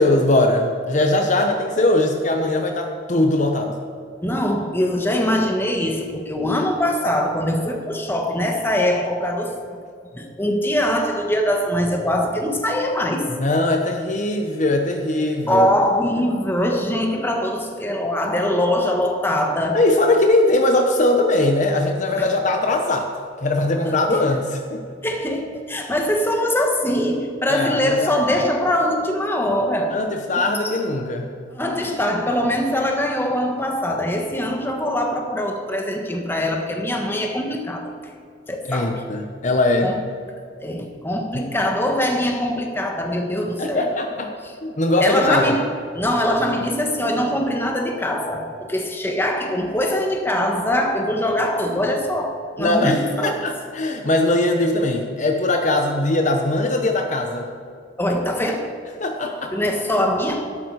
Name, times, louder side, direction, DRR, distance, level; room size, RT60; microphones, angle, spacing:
voice 1, 0.0-3.8 13.3-15.7 19.7-23.1 23.4-24.8 27.5-28.1 29.9-31.4 38.7-40.0 41.3-41.5 43.6-44.3 44.6-45.5 52.6-57.5 59.0-59.6, left 2 dB, 45° left, 3 dB, 1.0 m, -20 dB
voice 2, 4.2-9.5 10.1-13.3 15.5-19.9 22.2-22.3 23.8-24.2 25.0-30.0 31.5-37.9 38.5-39.0 39.8-40.0 40.6-43.9 44.4-44.5 45.0-53.5 58.0-58.7 59.5-60.6, left 1 dB, 15° left, 2 dB, 1.4 m, -22 dB
12.5 x 11.5 x 4.8 m, 2.3 s
head